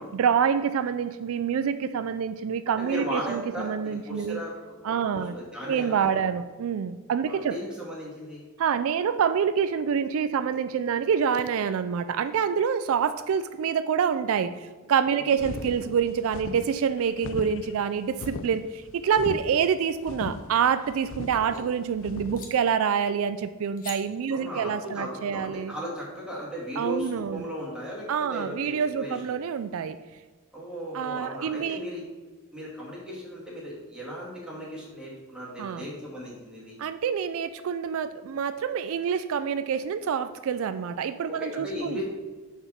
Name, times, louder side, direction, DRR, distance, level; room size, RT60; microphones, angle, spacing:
voice 1, 0.0-4.4 4.8-5.4 5.6-7.5 8.6-25.8 26.8-27.5 28.1-30.0 30.9-31.8 35.6-35.9 36.8-42.0, right 7 dB, 70° right, 11 dB, 0.3 m, -27 dB
voice 2, 2.8-6.2 7.3-8.4 15.2-15.5 21.4-21.7 24.3-29.3 30.5-32.0 32.5-36.8 41.3-42.0, equal, 5° right, -7 dB, 2.5 m, -37 dB
sound 1, 15.4-22.4, left 4 dB, 65° left, 0.4 m, -38 dB
sound 2, 20.6-21.6 22.3-22.5 23.8-24.0, left 5 dB, 40° left, 1.2 m, -44 dB
6.5 x 4.9 x 5.7 m, 1.4 s
head